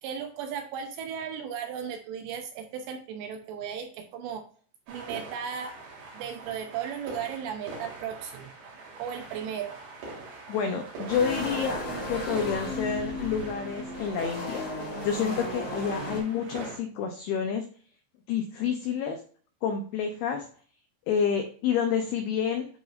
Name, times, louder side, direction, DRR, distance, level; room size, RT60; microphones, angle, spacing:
voice 1, 0.0-4.4 4.9-5.8 6.1-8.5 9.0-9.7, right 8 dB, 75° right, 5 dB, 2.7 m, -36 dB
sound 1, 4.9-16.8, right 3 dB, 60° right, 4.1 m, -44 dB
voice 2, 10.5-14.6 15.0-17.6 18.3-19.2 19.6-20.5 21.1-22.7, left 7 dB, 90° left, 5 dB, 2.2 m, -29 dB
sound 2, 11.1-16.2, left 1 dB, 30° left, 1.6 m, -35 dB
11.5 x 4.1 x 2.5 m, 0.43 s
omnidirectional pair, 5.6 m